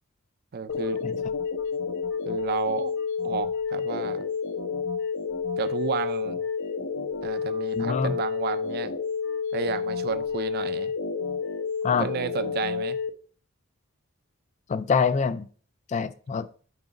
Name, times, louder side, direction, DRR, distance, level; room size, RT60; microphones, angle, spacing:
voice 1, 0.5-1.0 2.3-2.9 3.2-4.2 5.6-6.4 7.2-8.9 9.5-10.9 12.0-13.0, right 6 dB, 45° right, 0.4 m, -31 dB
sound 1, 0.7-13.1, left 5 dB, 60° left, 0.7 m, -30 dB
voice 2, 7.8-8.2 11.8-12.1 14.7-15.5 15.9-16.5, left 5 dB, 35° left, 0.3 m, -25 dB
6.2 x 3.8 x 5.1 m
head